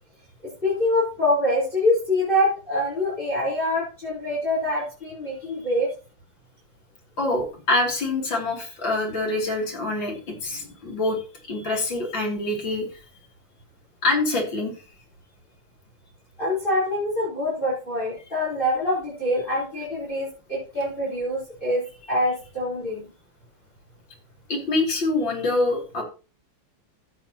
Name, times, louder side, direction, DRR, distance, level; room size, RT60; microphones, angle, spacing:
voice 1, 0.6-5.9 16.4-23.1, left 1 dB, 20° left, -6 dB, 4.5 m, -25 dB
voice 2, 7.2-11.2 11.5-12.9 14.0-14.8 24.5-26.0, left 2 dB, 60° left, -1 dB, 3.7 m, -25 dB
14.0 x 8.1 x 3.0 m, 0.34 s
omnidirectional pair, 2.4 m